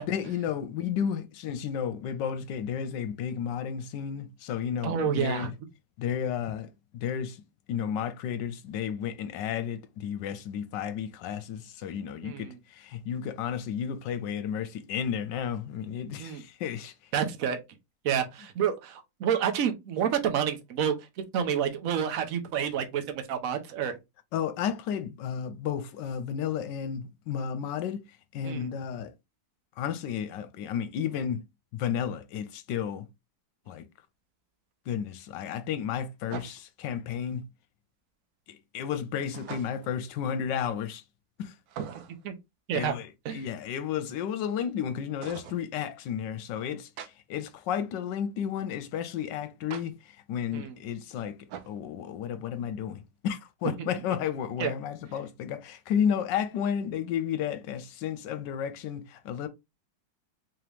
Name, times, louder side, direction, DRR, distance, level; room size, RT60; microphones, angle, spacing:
voice 1, 0.1-5.5 6.0-7.4 7.7-16.9 24.3-28.0 28.3-29.1 29.8-31.4 31.7-33.1 33.7-33.9 34.9-37.5 38.5-41.0 41.4-41.5 42.7-59.5, left 8 dB, 75° left, 1.2 m, -32 dB
voice 2, 4.8-5.5 12.2-12.6 16.2-16.4 17.1-17.6 18.0-23.9 28.4-28.7 42.2-42.3 42.7-42.9 43.2-43.4 50.5-50.7 53.8-53.9 54.6-54.7, right 8 dB, 60° right, 1.0 m, -29 dB
sound 1, 33.7-33.8 36.3-36.9 39.3-40.0 41.7-42.3 45.2-45.6 47.0-47.1 49.7-49.9 51.5-51.8, right 8 dB, 80° right, 1.3 m, -42 dB
3.8 x 2.9 x 3.3 m
omnidirectional pair, 2.0 m